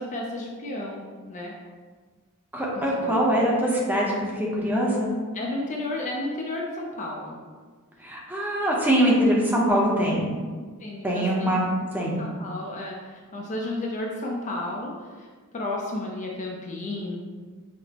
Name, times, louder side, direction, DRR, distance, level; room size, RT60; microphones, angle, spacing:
voice 1, 0.0-1.5 2.7-3.2 5.3-7.4 10.8-11.5 12.2-15.3 15.5-17.2, left 2 dB, 35° left, -1 dB, 0.4 m, -32 dB
voice 2, 2.5-4.1 4.3-5.1 8.0-10.3 11.0-11.6 11.9-12.2, equal, 10° right, -4 dB, 0.6 m, -23 dB
5.8 x 2.0 x 2.8 m, 1.5 s
head